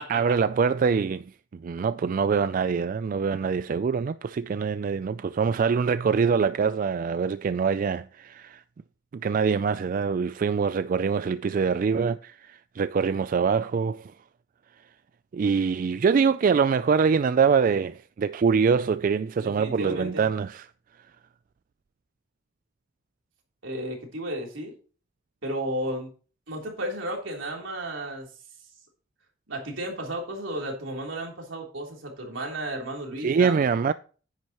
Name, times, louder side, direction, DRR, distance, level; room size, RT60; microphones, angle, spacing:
voice 1, 0.1-8.6 9.1-14.1 15.3-20.7 33.2-33.9, right 5 dB, 45° right, 0.3 m, -24 dB
voice 2, 19.4-20.3 23.6-24.7 25.4-26.1 26.5-28.3 29.5-33.6, right 1 dB, 80° right, 3.5 m, -33 dB
10.0 x 9.5 x 3.0 m
head